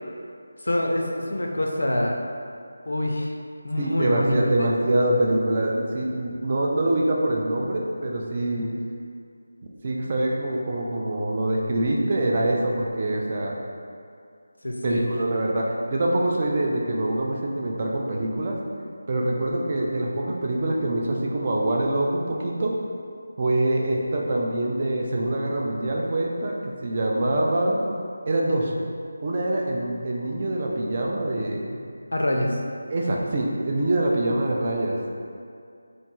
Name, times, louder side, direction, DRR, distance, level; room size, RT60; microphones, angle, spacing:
voice 1, 0.6-2.2 2.9-3.3 3.6-4.7 8.5-8.7 14.6-15.1 32.1-32.6, left 1 dB, 80° left, 0 dB, 0.4 m, -25 dB
voice 2, 3.8-8.7 9.8-13.5 14.8-18.6 19.1-22.7 23.4-27.8 28.3-28.7 29.2-31.8 32.9-35.0, right 1 dB, 35° right, -1 dB, 0.3 m, -25 dB
2.6 x 2.2 x 2.9 m, 2.3 s
figure-of-eight pair, 165°, 0 cm